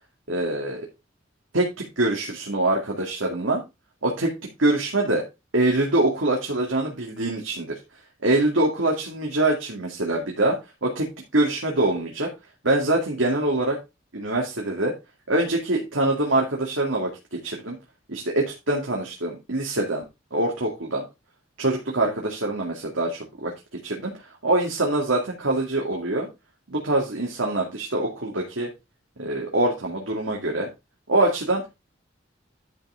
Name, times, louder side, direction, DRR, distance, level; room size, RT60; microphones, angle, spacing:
voice 1, 0.3-0.9 1.5-3.6 4.0-4.3 4.6-5.2 5.5-7.8 8.2-10.6 10.8-12.3 12.6-13.8 14.1-14.9 15.3-17.8 18.1-20.0 20.3-21.0 21.6-23.5 23.8-24.1 24.4-26.3 26.7-28.7 29.2-30.7 31.1-31.7, right 2 dB, 85° right, -1 dB, 2.3 m, -24 dB
11.0 x 5.5 x 3.7 m, 0.24 s
head